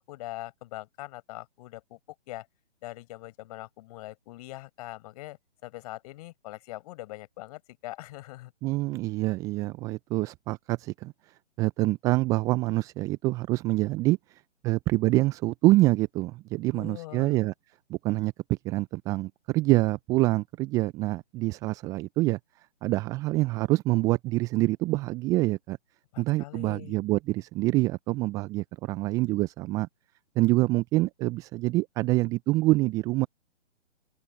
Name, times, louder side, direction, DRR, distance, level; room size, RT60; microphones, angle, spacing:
voice 1, 0.0-2.0 2.3-2.5 2.8-8.5 16.7-17.4 26.1-27.0, left 18 dB, 30° left, 7.7 m, -42 dB
voice 2, 8.6-17.5 17.9-25.8 26.2-29.9 30.4-33.3, right 19 dB, 10° right, 0.7 m, -26 dB
open air
figure-of-eight pair, 135°, 36 cm